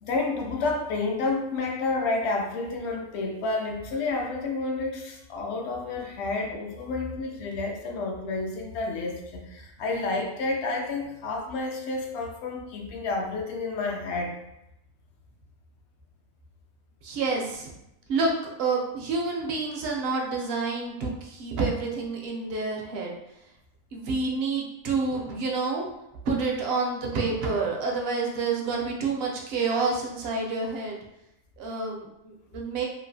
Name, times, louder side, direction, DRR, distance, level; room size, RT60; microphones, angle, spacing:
voice 1, 0.0-14.3, left 3 dB, 65° left, 1 dB, 0.8 m, -30 dB
voice 2, 17.0-17.7 18.1-18.3 18.6-23.2 23.9-25.9 26.2-31.0 31.6-32.9, right 4 dB, 65° right, -1 dB, 0.7 m, -28 dB
2.9 x 2.3 x 2.6 m, 0.86 s
omnidirectional pair, 1.4 m